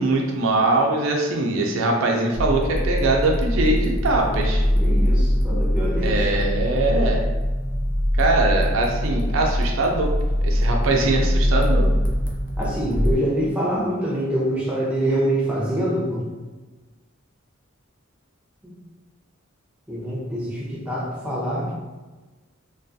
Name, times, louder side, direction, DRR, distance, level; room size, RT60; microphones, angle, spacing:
voice 1, 0.0-4.7 6.0-7.2 8.2-11.9, right 2 dB, 70° right, 1 dB, 0.4 m, -22 dB
sound 1, 2.3-13.1, equal, 45° left, 0.4 m, -22 dB
voice 2, 4.7-6.4 12.6-16.3 18.6-18.8 19.9-21.7, right 1 dB, 5° right, -5 dB, 0.5 m, -25 dB
2.3 x 2.3 x 2.6 m, 1.2 s
head